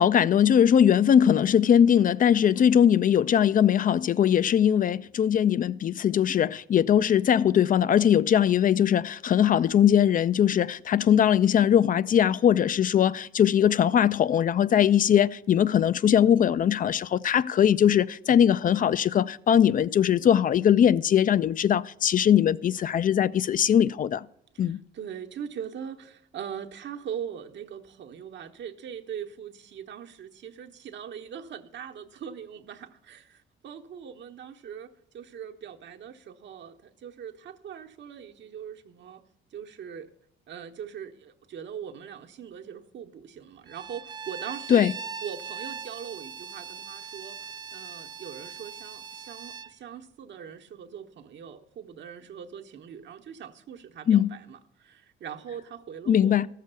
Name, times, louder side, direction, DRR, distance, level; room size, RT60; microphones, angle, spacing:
voice 1, 0.0-24.2 24.6-24.8 44.7-44.9 54.1-54.3 56.1-56.5, left 9 dB, 45° left, 0.4 m, -21 dB
voice 2, 24.5-39.2 39.5-40.1 40.5-44.9 45.2-56.4, right 8 dB, 65° right, 1.0 m, -41 dB
Bowed string instrument, 43.7-49.7, right 6 dB, 20° right, 0.4 m, -40 dB
14.0 x 6.6 x 6.7 m
cardioid pair, 90°, 20 cm